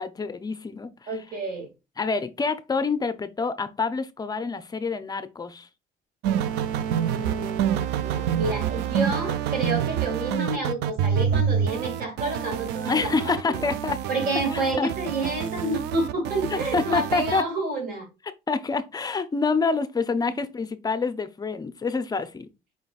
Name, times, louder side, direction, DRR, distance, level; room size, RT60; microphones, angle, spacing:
voice 1, 0.0-1.2 2.0-5.7 12.9-14.0 14.5-14.9 16.5-17.4 18.5-22.5, left 4 dB, 25° left, 0.5 m, -27 dB
voice 2, 1.1-1.7 6.9-13.3 14.1-18.1, right 2 dB, 60° right, 2.4 m, -29 dB
sound 1, 6.2-17.4, right 9 dB, 90° right, 0.4 m, -27 dB
5.1 x 3.8 x 2.3 m
cardioid pair, 110°, 17 cm